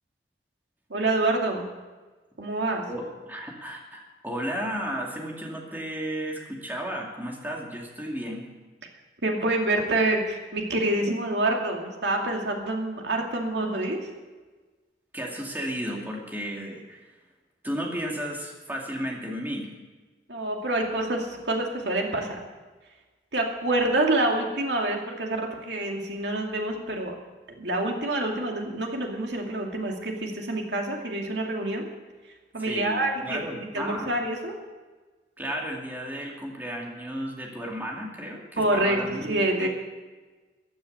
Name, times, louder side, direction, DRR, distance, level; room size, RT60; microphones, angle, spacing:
voice 1, 0.9-1.6 2.4-2.8 9.2-14.1 20.3-22.4 23.3-27.1 27.6-31.9 32.5-34.5 38.6-39.7, right 2 dB, 90° right, 1 dB, 2.5 m, -27 dB
voice 2, 2.9-8.5 15.1-17.0 17.6-19.7 32.7-34.1 35.4-39.7, equal, 10° right, -1 dB, 2.4 m, -33 dB
15.0 x 10.5 x 6.8 m, 1.3 s
head